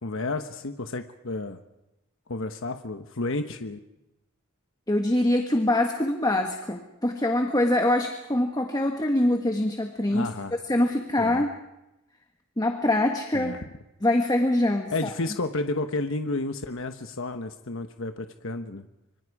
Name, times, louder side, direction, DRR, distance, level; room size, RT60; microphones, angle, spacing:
voice 1, 0.0-1.6 2.3-3.8 10.1-10.6 11.2-11.5 13.3-13.6 14.9-18.9, left 2 dB, 65° left, 7 dB, 1.2 m, -31 dB
voice 2, 4.9-10.3 10.7-11.5 12.6-13.6 14.0-14.9, left 1 dB, 20° left, 4 dB, 1.5 m, -24 dB
26.0 x 25.0 x 4.9 m, 0.91 s
head